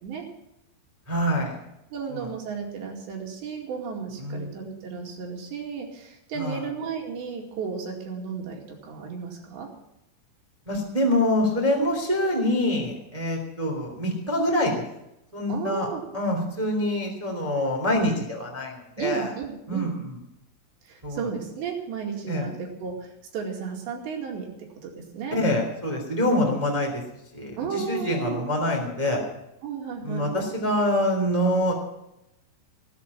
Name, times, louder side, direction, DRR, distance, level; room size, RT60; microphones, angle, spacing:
voice 1, 1.1-1.6 2.1-2.3 4.2-4.5 6.3-6.6 10.6-14.8 15.3-15.9 16.1-19.3 19.7-20.2 21.0-21.3 22.3-22.5 25.3-27.0 27.3-29.2 30.0-31.7, left 1 dB, 15° right, 1 dB, 1.5 m, -25 dB
voice 2, 1.9-9.7 15.5-16.0 19.0-20.0 20.8-25.4 27.6-28.5 29.6-30.3, right 6 dB, 65° right, 0 dB, 4.2 m, -34 dB
18.5 x 8.4 x 7.2 m, 0.87 s
omnidirectional pair, 5.9 m